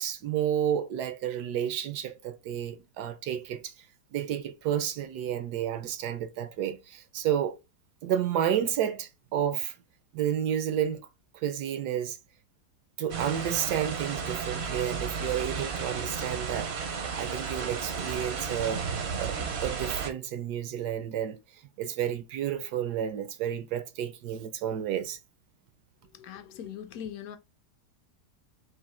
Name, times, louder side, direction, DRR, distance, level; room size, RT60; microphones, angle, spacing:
voice 1, 0.0-3.9 4.1-7.6 8.0-9.8 10.1-11.1 11.3-12.2 13.0-16.7 17.1-18.9 19.1-25.2, right 10 dB, 75° right, 1.1 m, -31 dB
sound 1, 13.1-20.1, right 5 dB, 55° right, 0.7 m, -33 dB
voice 2, 26.1-27.4, left 9 dB, 70° left, 0.9 m, -40 dB
3.8 x 2.7 x 4.1 m
omnidirectional pair, 1.8 m